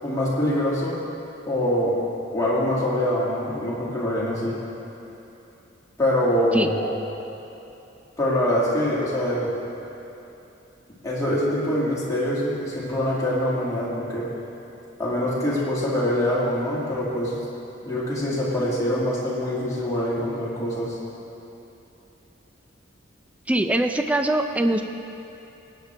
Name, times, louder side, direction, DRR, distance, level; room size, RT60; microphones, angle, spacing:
voice 1, 0.0-1.0 1.5-2.0 2.3-4.6 6.0-6.9 8.2-9.5 11.0-14.3 15.0-17.4 17.8-21.0, left 1 dB, 15° left, -7 dB, 2.4 m, -24 dB
voice 2, 23.5-24.8, right 1 dB, 5° right, 6 dB, 0.4 m, -22 dB
19.5 x 9.1 x 3.4 m, 2.9 s
head